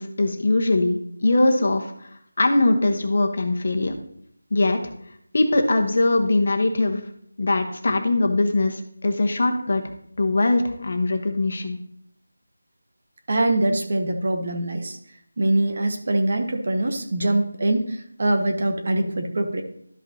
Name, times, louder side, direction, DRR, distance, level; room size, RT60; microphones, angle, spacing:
voice 1, 0.0-1.9 2.4-4.0 4.5-4.8 5.3-7.0 7.4-9.8 10.2-11.8, left 2 dB, 50° left, 5 dB, 1.1 m, -21 dB
voice 2, 13.3-15.0 15.4-19.6, right 1 dB, 45° right, 5 dB, 1.1 m, -23 dB
12.5 x 5.4 x 2.8 m, 0.68 s
figure-of-eight pair, 175°, 0 cm